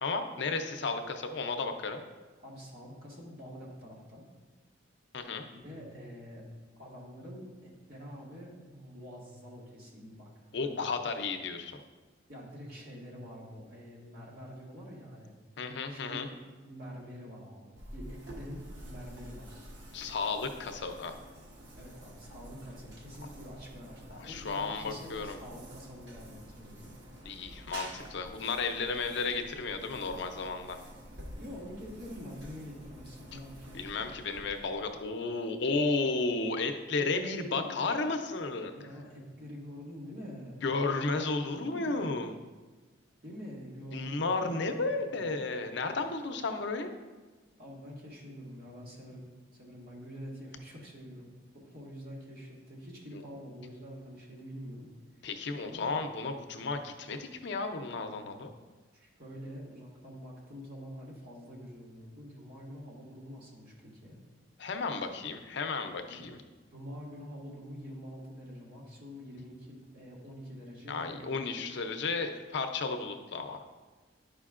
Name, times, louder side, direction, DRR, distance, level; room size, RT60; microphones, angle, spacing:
voice 1, 0.0-2.0 5.1-5.5 10.5-11.8 15.6-16.3 19.9-21.1 24.2-25.4 27.3-30.8 33.7-38.7 40.6-42.3 43.9-46.9 53.1-53.2 55.2-58.5 64.6-66.4 70.9-73.6, left 3 dB, 65° left, 6 dB, 0.6 m, -33 dB
voice 2, 2.4-4.3 5.5-6.5 6.8-10.3 10.6-10.9 12.3-15.4 15.9-19.7 21.8-26.9 31.4-33.8 37.0-37.8 38.7-40.6 41.0-42.3 43.2-44.6 45.1-45.4 47.6-54.9 55.2-55.3 55.6-56.0 58.2-58.4 58.9-64.2 66.1-66.3 66.7-71.6, equal, 55° right, -4 dB, 1.8 m, -46 dB
sound 1, 17.8-35.1, equal, 75° right, 1.4 m, -49 dB
10.5 x 5.0 x 2.5 m, 1.3 s
head